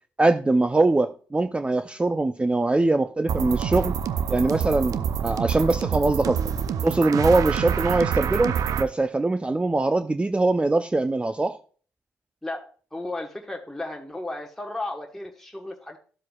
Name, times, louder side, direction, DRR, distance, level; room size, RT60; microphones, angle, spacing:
voice 1, 0.2-3.9 4.3-6.4 6.8-11.6, right 2 dB, 15° right, 10 dB, 0.5 m, -22 dB
sound 1, 3.3-8.8, right 8 dB, 60° right, 0.6 m, -26 dB
voice 2, 12.9-16.0, left 2 dB, 5° left, 1 dB, 1.3 m, -34 dB
12.0 x 7.4 x 2.3 m, 0.41 s
hypercardioid pair, 45°, 7 cm